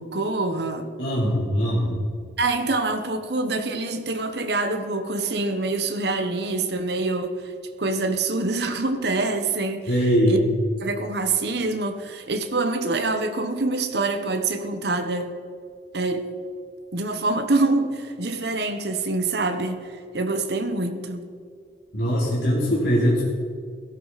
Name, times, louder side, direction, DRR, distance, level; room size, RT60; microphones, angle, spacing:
voice 1, 0.0-0.9 2.4-7.5 7.8-9.9 10.3-10.4 10.8-15.3 15.9-16.3 16.9-21.3, right 3 dB, 65° right, 7 dB, 1.1 m, -25 dB
voice 2, 1.0-2.0 9.9-10.4 21.9-23.2, equal, 70° left, -7 dB, 3.4 m, -21 dB
17.0 x 14.0 x 4.2 m, 2.1 s
head